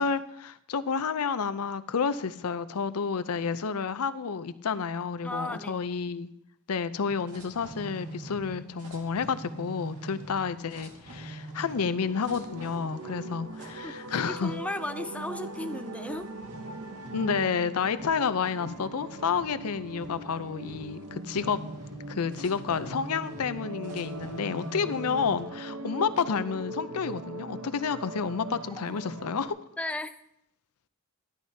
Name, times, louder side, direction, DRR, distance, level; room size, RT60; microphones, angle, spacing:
voice 1, 0.0-6.3 6.7-14.5 17.1-21.6 22.1-29.6, left 6 dB, 80° left, 13 dB, 0.5 m, -30 dB
voice 2, 5.2-5.8 13.6-16.3 29.8-30.1, left 1 dB, 5° left, 10 dB, 0.4 m, -35 dB
sound 1, 7.1-25.4, right 2 dB, 90° right, 1.9 m, -45 dB
sound 2, 11.7-29.5, right 2 dB, 75° right, 0.8 m, -41 dB
12.5 x 12.5 x 2.8 m, 0.75 s
head